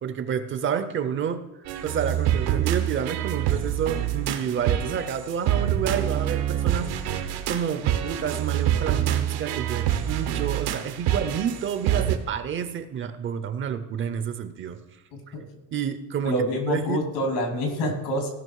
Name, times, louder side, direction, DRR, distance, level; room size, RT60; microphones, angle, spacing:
voice 1, 0.0-1.5 1.8-7.2 7.5-14.8 15.3-15.4 15.7-17.1, right 8 dB, 30° right, 11 dB, 0.5 m, -29 dB
sound 1, 1.7-12.2, right 11 dB, 90° right, 1.3 m, -26 dB
voice 2, 16.2-18.3, left 1 dB, 85° left, 3 dB, 3.0 m, -26 dB
17.0 x 6.0 x 4.7 m, 1.1 s
cardioid pair, 180°, 38 cm